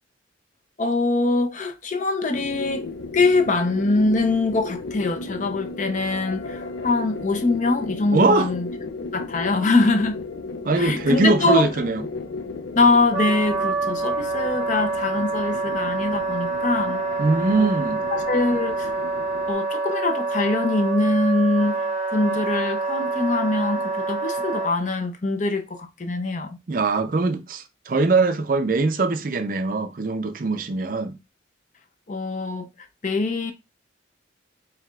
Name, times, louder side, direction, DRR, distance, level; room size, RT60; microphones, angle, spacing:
voice 1, 0.8-2.8 3.1-8.7 9.1-10.3 10.8-11.7 12.8-17.0 17.6-17.7 18.1-19.0 19.5-26.6 32.1-32.7 33.0-33.5, left 3 dB, 40° left, 0.5 m, -23 dB
sound 1, 2.3-19.5, left 3 dB, 90° left, 0.5 m, -35 dB
voice 2, 8.1-8.5 10.6-12.0 17.2-18.0 26.7-31.1, right 3 dB, 45° right, 0.4 m, -22 dB
Wind instrument woodwind instrument, 13.1-24.7, right 3 dB, 5° right, 0.9 m, -26 dB
4.7 x 3.4 x 2.3 m
head